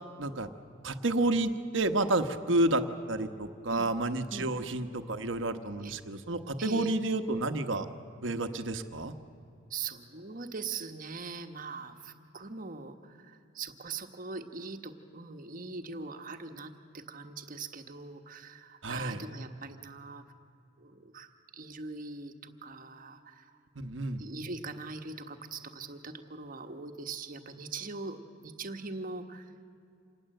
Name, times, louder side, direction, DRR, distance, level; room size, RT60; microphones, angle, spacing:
voice 1, 0.2-0.5 0.8-2.8 3.1-7.9 8.2-9.1 18.8-19.2 23.8-24.2, right 2 dB, 65° right, 8 dB, 1.2 m, -30 dB
voice 2, 6.6-6.9 9.7-20.2 20.8-23.6 24.2-29.5, right 4 dB, 45° right, 6 dB, 1.3 m, -42 dB
27.0 x 19.5 x 7.8 m, 2.5 s
head